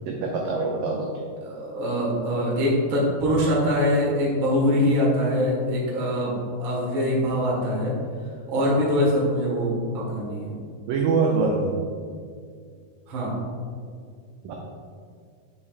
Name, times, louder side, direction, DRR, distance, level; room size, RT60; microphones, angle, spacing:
voice 1, 0.1-1.1 10.9-11.7 14.4-14.5, right 4 dB, 85° right, 0 dB, 1.9 m, -24 dB
voice 2, 1.4-7.9 8.5-10.6 13.1-13.3, equal, 60° right, -5 dB, 1.4 m, -23 dB
7.3 x 5.6 x 2.4 m, 2.1 s
omnidirectional pair, 4.5 m